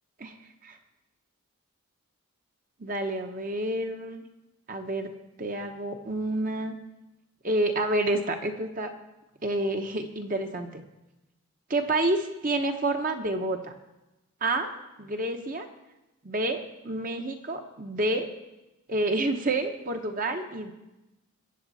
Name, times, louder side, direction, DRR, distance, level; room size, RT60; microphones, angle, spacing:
voice 1, 2.8-4.2 4.7-5.1 5.4-6.7 7.4-8.9 9.4-10.8 11.7-13.7 14.4-14.7 15.0-15.7 16.2-18.3 18.9-20.7, right 2 dB, 40° right, 5 dB, 1.1 m, -29 dB
22.0 x 8.0 x 4.2 m, 0.99 s
head